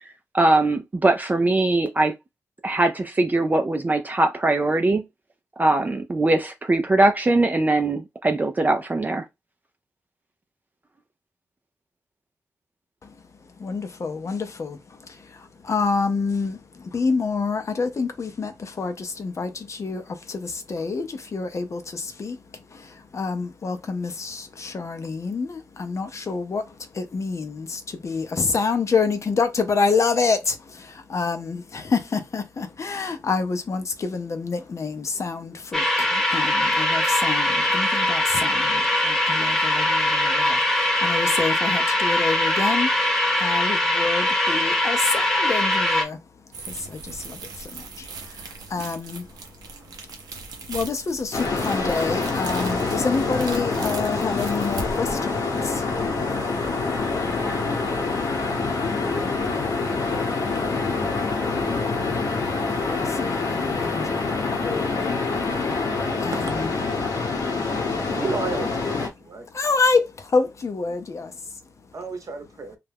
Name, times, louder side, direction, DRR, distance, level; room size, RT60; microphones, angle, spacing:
voice 1, 0.3-2.1 2.6-5.0 5.6-9.3, right 2 dB, 25° right, 0.4 m, -21 dB
voice 2, 13.6-46.2 46.6-49.7 50.0-50.1 50.7-56.2 56.6-56.7 57.5-57.6 58.8-59.2 59.6-59.9 60.2-60.6 61.1-61.7 62.9-65.2 65.7-66.7 67.4-67.6 69.5-71.6, left 4 dB, 50° left, 0.5 m, -28 dB
sound 1, 35.7-46.0, left 1 dB, 5° left, 0.8 m, -22 dB
sound 2, 46.5-57.7, right 3 dB, 90° right, 0.6 m, -40 dB
sound 3, 51.3-69.1, left 4 dB, 70° left, 0.9 m, -26 dB
voice 3, 66.3-66.6 68.1-69.5 71.9-72.8, right 4 dB, 60° right, 0.8 m, -32 dB
2.3 x 2.1 x 3.3 m
cardioid pair, 55°, 6 cm